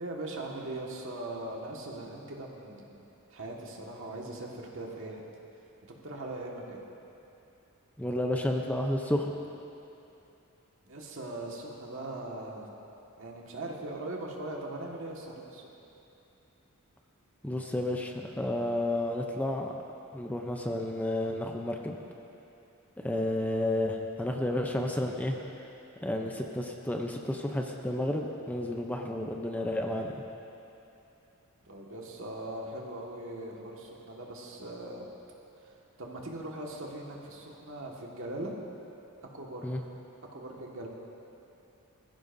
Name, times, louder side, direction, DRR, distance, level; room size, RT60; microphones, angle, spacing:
voice 1, 0.0-3.0 3.3-5.2 5.8-6.8 10.9-12.7 13.2-15.7 31.7-35.0 36.0-38.5 39.3-39.7 40.3-40.9, right 1 dB, 60° right, -2 dB, 1.7 m, -40 dB
voice 2, 8.0-9.3 17.4-19.7 20.1-22.0 23.0-25.4 26.0-30.1 39.6-39.8, left 1 dB, 5° left, 2 dB, 0.6 m, -31 dB
20.5 x 15.0 x 2.7 m, 2.9 s
head